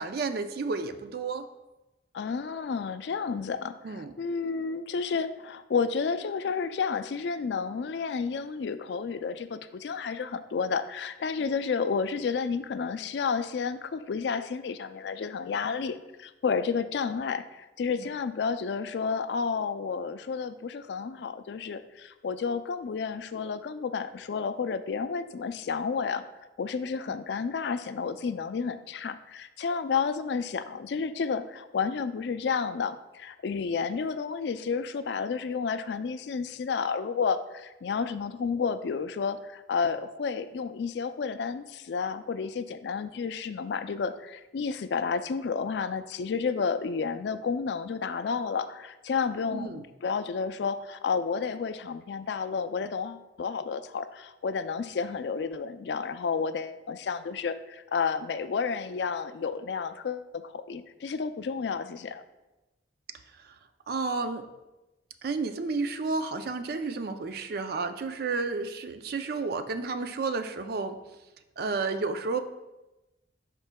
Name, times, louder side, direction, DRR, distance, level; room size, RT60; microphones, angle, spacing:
voice 1, 0.0-1.5 3.8-4.1 18.0-18.1 27.1-27.2 49.5-49.8 63.9-64.5 65.2-71.0 71.6-72.4, right 4 dB, 60° right, 9 dB, 0.4 m, -31 dB
voice 2, 2.1-26.2 26.6-62.2, left 5 dB, 70° left, 11 dB, 0.4 m, -31 dB
12.0 x 4.4 x 2.2 m, 1.0 s
head